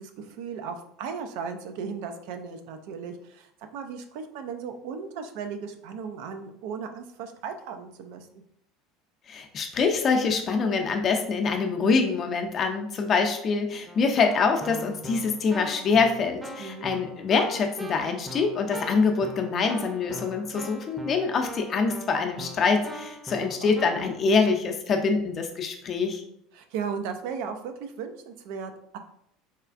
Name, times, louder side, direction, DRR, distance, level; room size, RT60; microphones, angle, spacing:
voice 1, 0.0-8.4 16.6-16.9 23.4-23.8 26.5-29.0, right 6 dB, 65° right, 6 dB, 0.4 m, -36 dB
voice 2, 9.3-26.2, left 4 dB, 40° left, 5 dB, 0.5 m, -25 dB
Keyboard (musical), 13.9-24.2, equal, 10° right, 0.6 m, -41 dB
4.1 x 2.3 x 2.4 m, 0.72 s
hypercardioid pair, 75°, 0 cm